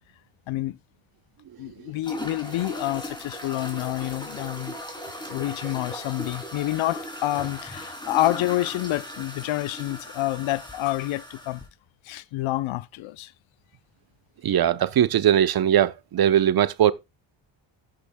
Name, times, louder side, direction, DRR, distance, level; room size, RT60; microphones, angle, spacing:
voice 1, 0.5-0.8 1.6-4.8 5.3-11.6 12.0-13.3, left 16 dB, 70° left, 0.7 m, -28 dB
sound 1, 2.0-11.7, equal, 10° left, 3.0 m, -38 dB
voice 2, 14.4-16.9, right 10 dB, 50° right, 0.8 m, -20 dB
12.5 x 8.8 x 2.2 m
cardioid pair, 85°, 48 cm